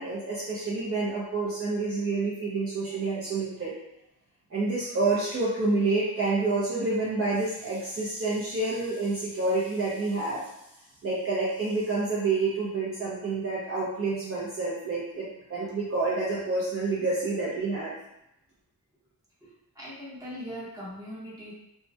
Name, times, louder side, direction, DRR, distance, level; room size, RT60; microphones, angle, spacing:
voice 1, 0.0-3.7 4.5-10.5 11.0-17.9, right 3 dB, 40° right, -8 dB, 0.5 m, -28 dB
voice 2, 19.7-21.5, equal, 10° right, -8 dB, 0.9 m, -40 dB
2.1 x 2.1 x 2.7 m, 0.85 s
wide cardioid pair, 110°, 36 cm